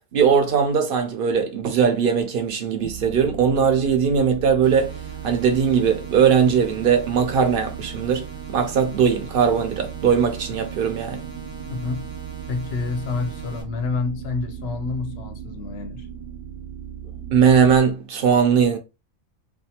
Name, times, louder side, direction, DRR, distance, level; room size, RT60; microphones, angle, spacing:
voice 1, 0.1-5.0 5.2-8.2 8.5-11.2 17.3-18.8, right 7 dB, 60° right, 0.6 m, -19 dB
sound 1, 2.8-17.8, right 8 dB, 80° right, 1.1 m, -37 dB
sound 2, 4.6-13.6, right 6 dB, 5° right, 0.5 m, -41 dB
voice 2, 11.6-12.1 12.5-16.1, left 4 dB, 60° left, 0.8 m, -28 dB
2.5 x 2.4 x 2.7 m
omnidirectional pair, 1.3 m